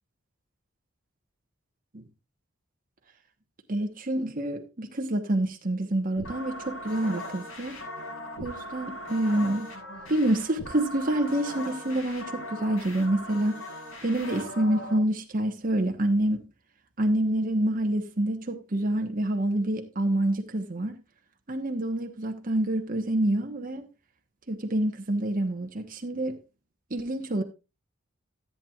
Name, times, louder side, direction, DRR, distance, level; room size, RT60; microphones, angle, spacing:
voice 1, 3.7-7.8 8.4-9.7 10.1-13.6 14.0-16.4 17.0-21.0 21.5-23.8 24.5-26.4 26.9-27.4, right 1 dB, 40° right, 1.2 m, -27 dB
sound 1, 6.2-15.0, left 1 dB, 65° left, 6.4 m, -39 dB
14.0 x 8.8 x 2.4 m
head